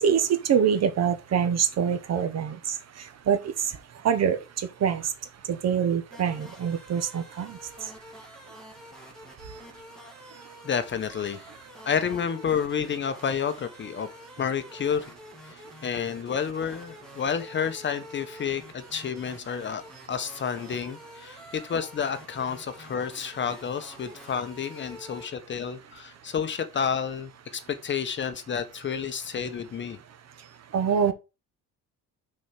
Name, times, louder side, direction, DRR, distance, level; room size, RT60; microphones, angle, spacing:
voice 1, 0.0-2.6 3.3-3.4 4.0-4.4 4.8-5.0 5.5-7.6 30.7-31.1, right 7 dB, 50° right, 1.2 m, -24 dB
sound 1, 6.1-25.3, equal, ahead, 2.4 m, -48 dB
voice 2, 10.6-11.4 11.8-14.1 14.4-15.1 15.5-19.8 20.1-30.0, left 7 dB, 35° left, 0.9 m, -30 dB
6.2 x 4.5 x 5.6 m
cardioid pair, 140°, 33 cm